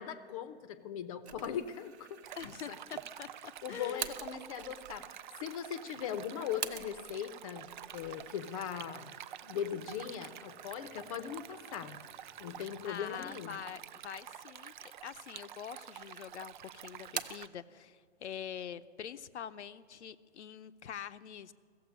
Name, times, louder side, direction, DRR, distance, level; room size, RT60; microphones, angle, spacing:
voice 1, 0.0-2.1 2.4-2.8 3.6-5.1 5.4-9.1 9.4-12.0 12.4-13.6, left 9 dB, 30° left, 13 dB, 0.7 m, -39 dB
sound 1, 1.2-7.2 7.6-13.0 13.5-13.6 14.4-15.1 15.4-16.1 16.4-17.5, right 7 dB, 70° right, 1.1 m, -47 dB
Stream, 2.2-17.5, right 11 dB, 45° right, 0.4 m, -49 dB
voice 2, 2.4-4.1 12.8-14.7 15.0-21.5, left 8 dB, 80° left, 13 dB, 0.8 m, -45 dB
15.5 x 7.8 x 9.8 m, 2.2 s
hypercardioid pair, 145°, 34 cm